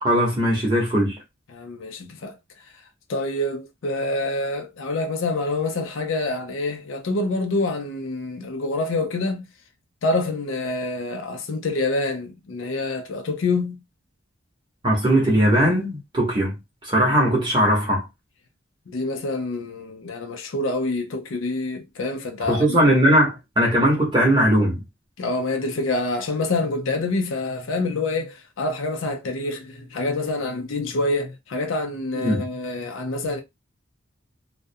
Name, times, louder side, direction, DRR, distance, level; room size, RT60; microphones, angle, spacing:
voice 1, 0.0-1.2 14.8-16.6 16.8-18.0 22.4-24.8 32.2-32.5, equal, 25° right, 0.8 m, -19 dB
voice 2, 1.5-2.3 3.1-9.5 10.0-13.8 18.9-22.8 25.2-33.4, left 2 dB, 70° left, 0.5 m, -26 dB
2.4 x 2.1 x 2.6 m
head